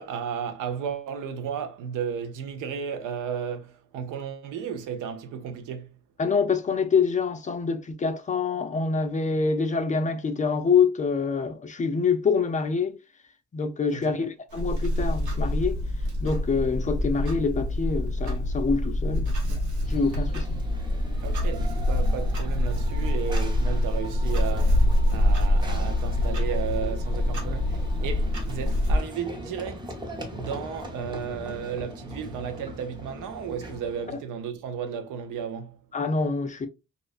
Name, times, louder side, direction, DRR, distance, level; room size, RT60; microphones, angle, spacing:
voice 1, 0.0-5.9 13.9-14.3 21.2-30.0 30.3-35.8, right 7 dB, 90° right, 0.6 m, -34 dB
voice 2, 6.2-13.0 13.5-15.8 16.2-19.6 19.9-20.5 35.9-36.7, left 5 dB, 25° left, 0.4 m, -26 dB
Clock, 14.5-29.0, left 1 dB, 75° right, 1.0 m, -25 dB
Run / Train, 19.8-34.2, equal, 15° right, 0.7 m, -40 dB
2.4 x 2.2 x 2.4 m
cardioid pair, 90°, 30 cm